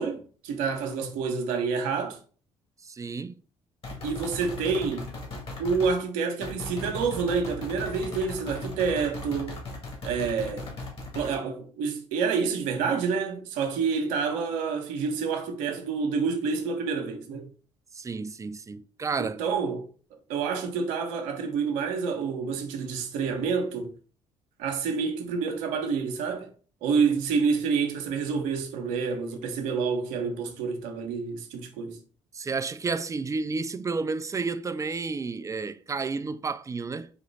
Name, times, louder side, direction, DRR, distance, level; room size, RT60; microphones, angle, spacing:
voice 1, 0.0-2.2 4.0-5.1 5.6-9.6 10.0-10.7 11.1-17.5 19.2-19.9 20.3-23.9 24.6-26.5 26.8-32.0, right 5 dB, 70° right, 0.9 m, -28 dB
voice 2, 2.8-3.4 17.9-19.4 32.3-37.1, right 4 dB, 20° right, 0.4 m, -31 dB
sound 1, 3.8-6.0 6.4-11.4, left 2 dB, 40° left, 2.0 m, -38 dB
4.3 x 2.9 x 4.0 m
hypercardioid pair, 50°, 14 cm